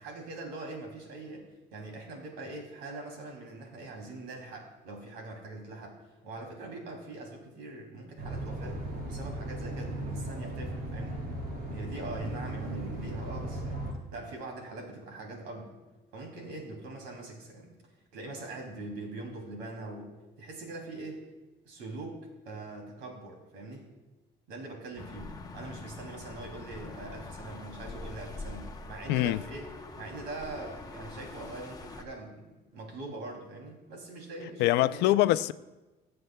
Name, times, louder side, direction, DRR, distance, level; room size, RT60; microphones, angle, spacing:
voice 1, 0.0-6.0 6.2-11.2 11.7-13.8 14.1-15.8 16.1-17.8 18.1-20.1 20.4-21.3 21.6-23.9 24.5-29.7 29.9-35.1, right 2 dB, 90° right, 2.8 m, -42 dB
sound 1, 8.2-13.9, right 1 dB, 65° right, 3.9 m, -37 dB
sound 2, 25.0-32.0, left 3 dB, 20° left, 0.9 m, -44 dB
voice 2, 29.1-29.4 34.6-35.5, left 15 dB, 85° left, 0.4 m, -24 dB
20.0 x 7.7 x 2.2 m
cardioid pair, 110°, 17 cm